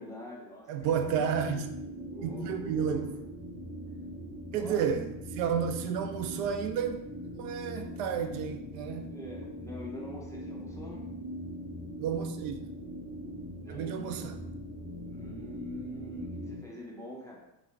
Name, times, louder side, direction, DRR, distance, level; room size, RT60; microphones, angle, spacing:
voice 1, 0.0-1.2 2.1-3.1 4.5-4.8 8.9-11.0 13.6-14.3 15.0-17.5, left 1 dB, 5° left, 0.5 m, -44 dB
voice 2, 0.7-1.7 2.2-3.2 4.5-7.1 7.3-9.1 12.0-12.7 13.7-14.4, right 7 dB, 70° right, 0.6 m, -31 dB
sound 1, 0.8-16.6, equal, 10° right, 1.1 m, -41 dB
3.3 x 2.1 x 3.4 m
hypercardioid pair, 95°, 50 cm